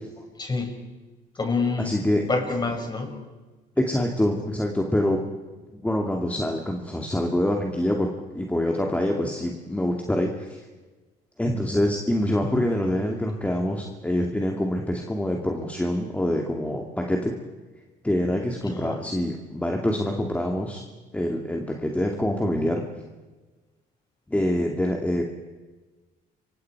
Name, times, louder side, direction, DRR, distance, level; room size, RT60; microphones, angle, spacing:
voice 1, 0.3-0.7 1.3-2.0 2.3-3.1 18.6-19.0, left 3 dB, 25° left, 3 dB, 6.3 m, -27 dB
voice 2, 1.8-2.2 3.8-5.2 5.7-8.1 8.3-10.6 11.4-17.3 18.0-20.8 21.1-22.8 24.3-25.2, left 1 dB, 10° left, 1 dB, 2.4 m, -25 dB
28.5 x 24.5 x 4.8 m, 1.3 s
cardioid pair, 110°, 17 cm